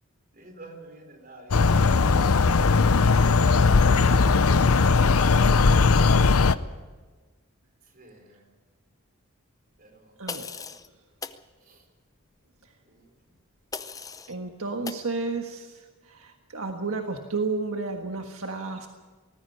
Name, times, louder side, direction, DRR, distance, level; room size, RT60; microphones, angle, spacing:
voice 1, 0.3-4.9 6.0-6.3 7.9-8.5 9.8-10.1 11.6-11.8 12.8-13.1, right 2 dB, 40° right, 3 dB, 4.0 m, -46 dB
sound 1, 1.5-6.6, left 4 dB, 90° left, 0.7 m, -19 dB
voice 2, 10.2-10.5 14.3-15.7 16.1-18.9, right 3 dB, 80° right, 4 dB, 1.5 m, -31 dB
sound 2, 10.3-10.9 11.2-11.4 13.7-14.3 14.8-15.1, left 5 dB, 15° left, 0.6 m, -37 dB
19.0 x 14.5 x 9.7 m, 1.3 s
head